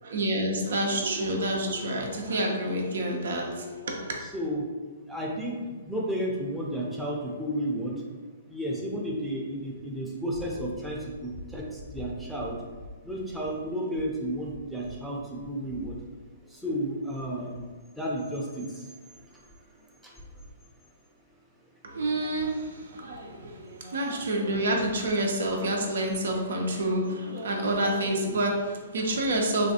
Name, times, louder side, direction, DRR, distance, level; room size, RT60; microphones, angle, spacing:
voice 1, 0.0-4.2 21.8-29.7, right 1 dB, 70° right, 1 dB, 0.5 m, -28 dB
voice 2, 4.3-4.7 5.1-7.9 8.5-12.6 13.0-16.0 16.5-17.7 18.0-18.9 20.0-20.1, equal, 5° right, -4 dB, 0.6 m, -32 dB
3.2 x 2.3 x 2.7 m, 1.4 s
hypercardioid pair, 130°, 0 cm